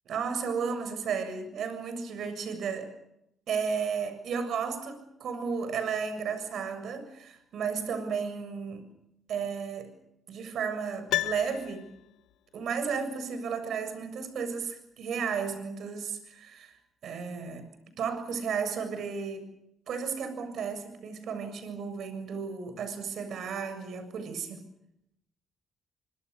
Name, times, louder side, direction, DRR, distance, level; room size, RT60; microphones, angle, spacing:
voice 1, 0.1-2.9 3.5-8.8 9.3-9.9 10.3-11.9 12.5-16.8 17.0-17.7 18.0-19.5 19.9-24.6, right 6 dB, 70° right, 9 dB, 7.2 m, -33 dB
Piano, 11.1-12.4 12.6-12.7, left 15 dB, 80° left, 1.1 m, -33 dB
25.5 x 25.5 x 6.8 m, 0.81 s
supercardioid pair, 70°, 0 cm